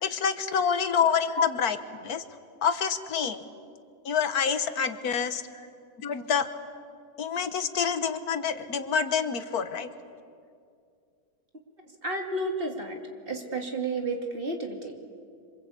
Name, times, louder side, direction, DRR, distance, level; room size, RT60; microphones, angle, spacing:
voice 1, 0.0-1.8 2.0-2.2 2.6-3.4 4.0-5.4 6.0-6.5 7.2-9.9, left 6 dB, 75° left, 10 dB, 1.7 m, -27 dB
voice 2, 12.0-13.0 13.3-15.1, right 1 dB, 35° right, 2 dB, 2.9 m, -31 dB
27.5 x 25.0 x 8.4 m, 2.3 s
omnidirectional pair, 1.6 m